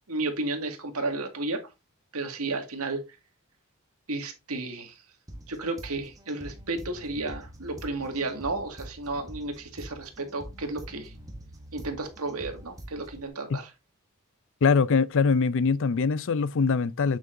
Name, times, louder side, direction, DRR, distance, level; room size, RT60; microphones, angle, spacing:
voice 1, 0.1-1.6 2.1-3.0 4.1-5.0 5.5-11.1 11.7-13.7, right 2 dB, 85° right, 1.9 m, -32 dB
sound 1, 5.3-13.3, right 1 dB, 15° right, 1.3 m, -45 dB
voice 2, 14.6-17.2, left 5 dB, 60° left, 0.5 m, -23 dB
8.4 x 7.3 x 2.6 m
head